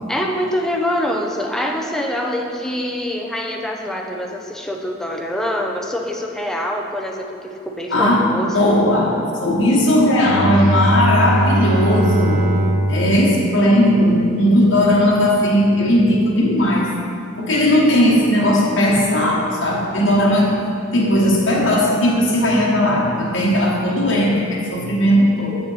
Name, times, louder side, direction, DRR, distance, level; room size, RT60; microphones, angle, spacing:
voice 1, 0.1-8.5, equal, 5° left, 0 dB, 0.6 m, -25 dB
voice 2, 7.9-8.2 8.5-12.4 12.9-16.9 17.4-20.5 20.9-25.5, left 1 dB, 70° left, -5 dB, 1.2 m, -17 dB
Bowed string instrument, 10.1-14.6, right 1 dB, 50° right, 0.6 m, -21 dB
7.0 x 6.9 x 4.0 m, 2.4 s
head